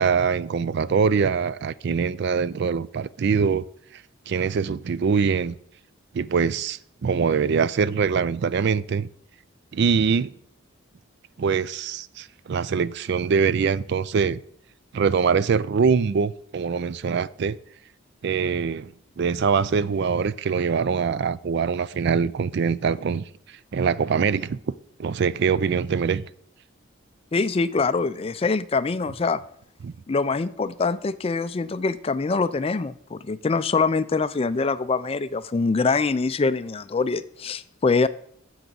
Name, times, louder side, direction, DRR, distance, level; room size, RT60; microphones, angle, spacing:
voice 1, 0.0-3.7 3.9-5.5 6.1-9.1 9.7-10.3 11.4-14.4 14.9-17.6 18.2-23.2 23.7-24.6 25.0-26.2 29.8-29.9, right 6 dB, 55° right, 0.4 m, -23 dB
voice 2, 27.3-29.4 30.1-38.1, left 4 dB, 30° left, 0.4 m, -24 dB
7.9 x 6.2 x 6.9 m
head